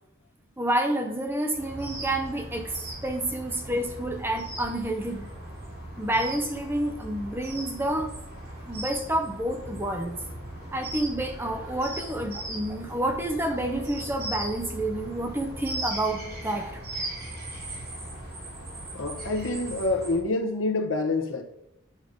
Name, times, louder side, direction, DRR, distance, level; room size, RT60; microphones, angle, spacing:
voice 1, 0.6-2.8 3.0-5.3 6.0-8.1 8.7-10.2 10.7-16.8, right 1 dB, 10° right, 0.8 m, -29 dB
sound 1, 1.5-20.2, right 1 dB, 45° right, 3.3 m, -38 dB
voice 2, 18.9-21.4, left 2 dB, 70° left, 1.1 m, -27 dB
9.0 x 5.4 x 5.2 m
head